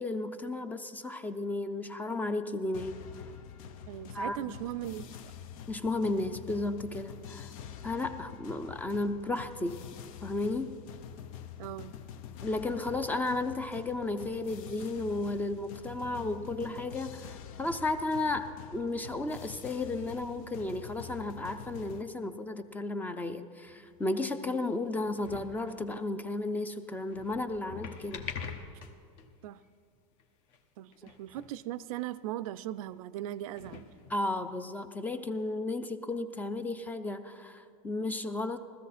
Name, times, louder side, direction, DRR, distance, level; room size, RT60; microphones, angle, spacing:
voice 1, 0.0-3.0 4.1-4.6 5.7-7.5 7.8-9.8 10.2-10.7 12.4-28.2 34.1-38.6, left 2 dB, 10° left, 0.4 m, -33 dB
sound 1, 2.7-22.0, left 8 dB, 70° left, 0.8 m, -46 dB
voice 2, 3.9-5.1 11.6-12.0 24.4-24.6 29.4-29.6 30.8-33.9, right 13 dB, 75° right, 0.4 m, -39 dB
sound 2, 23.7-24.3 24.9-25.8 26.9-29.3 29.6-29.7 30.2-30.3 30.5-30.6 30.9-31.6 31.9-32.0 32.9-33.0 33.4-34.6 35.4-35.5, left 6 dB, 55° left, 1.2 m, -45 dB
16.0 x 14.0 x 4.2 m
supercardioid pair, 145°, 18 cm